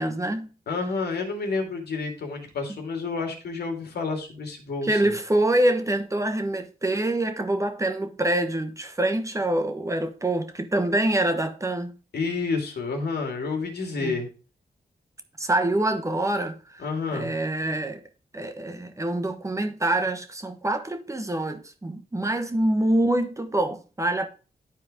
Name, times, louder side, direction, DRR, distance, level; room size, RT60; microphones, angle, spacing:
voice 1, 0.0-0.5 4.8-11.9 14.0-14.2 15.4-16.8 17.1-18.0 18.3-24.3, right 1 dB, 20° right, 1.2 m, -25 dB
voice 2, 0.7-5.1 12.1-14.3 16.8-17.3, left 4 dB, 85° left, 2.3 m, -29 dB
11.0 x 4.6 x 3.7 m
wide cardioid pair, 95°, 16 cm